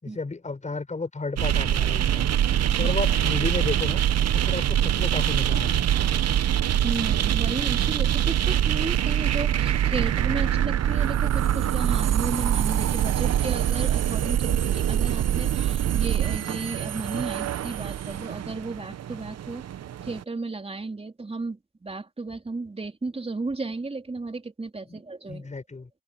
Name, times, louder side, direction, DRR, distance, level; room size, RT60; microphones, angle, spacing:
voice 1, 0.0-2.3 2.8-4.0 4.3-5.8 24.9-25.0 25.3-25.9, left 3 dB, 25° left, 5.8 m, -32 dB
sound 1, 1.4-20.2, right 10 dB, 55° right, 1.0 m, -24 dB
voice 2, 6.8-19.7 20.0-25.5, right 3 dB, 20° right, 3.6 m, -34 dB
open air
cardioid pair, 90°, 30 cm